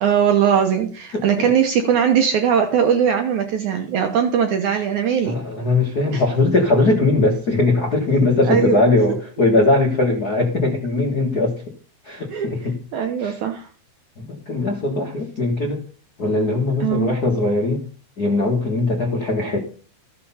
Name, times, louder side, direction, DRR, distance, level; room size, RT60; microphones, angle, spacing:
voice 1, 0.0-5.3 6.1-6.2 8.5-9.2 12.3-12.5 12.9-13.7 16.8-17.2, right 8 dB, 75° right, 5 dB, 1.8 m, -20 dB
voice 2, 1.1-1.5 5.2-11.5 12.0-12.8 13.2-13.4 14.2-15.8 16.2-17.8 18.2-19.6, left 2 dB, 90° left, 1 dB, 0.8 m, -20 dB
13.5 x 6.7 x 5.6 m, 0.42 s
omnidirectional pair, 4.5 m